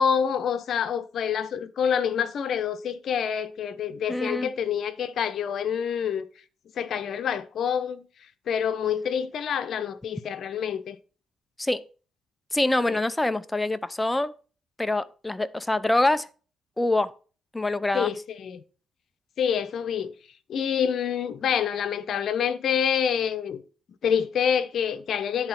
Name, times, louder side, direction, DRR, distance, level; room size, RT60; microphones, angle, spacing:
voice 1, 0.0-6.3 6.8-8.0 8.5-11.0 12.9-13.0 17.9-18.6 19.4-20.1 20.5-23.6 24.0-25.5, left 8 dB, 65° left, 0.9 m, -27 dB
voice 2, 4.1-4.5 11.6-11.8 12.5-14.3 14.8-16.3 16.8-17.1 17.5-18.1, left 2 dB, 10° left, 0.7 m, -25 dB
10.5 x 4.3 x 5.8 m
cardioid pair, 90°, 0 cm